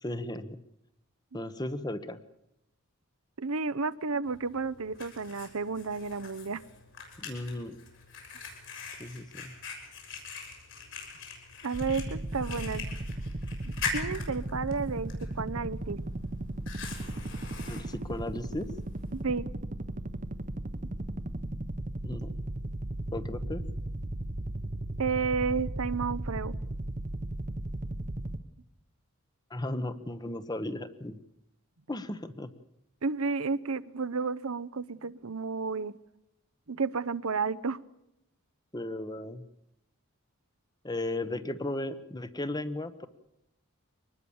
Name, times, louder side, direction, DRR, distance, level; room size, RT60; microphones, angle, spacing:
voice 1, 0.0-0.6 1.3-2.2 7.2-7.8 9.0-9.5 17.6-18.7 22.0-22.3 23.1-23.6 29.5-31.2 31.9-32.6 38.7-39.4 40.8-43.1, left 1 dB, 20° left, 12 dB, 1.1 m, -35 dB
voice 2, 3.4-6.6 11.6-12.8 13.9-16.0 19.1-19.5 25.0-26.5 33.0-35.9 36.7-37.8, right 4 dB, 75° right, 15 dB, 0.8 m, -32 dB
Fire, 4.3-19.2, left 4 dB, 55° left, 7.2 m, -43 dB
sound 1, 11.7-28.4, right 1 dB, 35° right, 0.9 m, -36 dB
24.0 x 20.0 x 7.2 m, 0.83 s
head